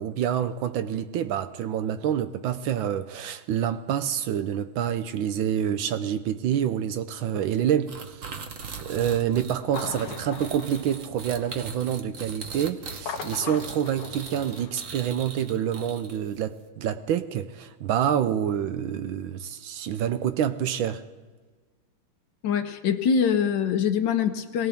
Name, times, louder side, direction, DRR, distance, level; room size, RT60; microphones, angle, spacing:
voice 1, 0.0-8.3 8.8-21.0, right 9 dB, 75° right, 1.4 m, -27 dB
sound 1, 7.9-16.4, right 5 dB, 50° right, 1.1 m, -40 dB
sound 2, 9.6-11.8 12.9-15.4, left 7 dB, 90° left, 1.8 m, -40 dB
voice 2, 22.4-24.7, left 7 dB, 65° left, 1.3 m, -24 dB
22.5 x 18.0 x 3.5 m
omnidirectional pair, 2.3 m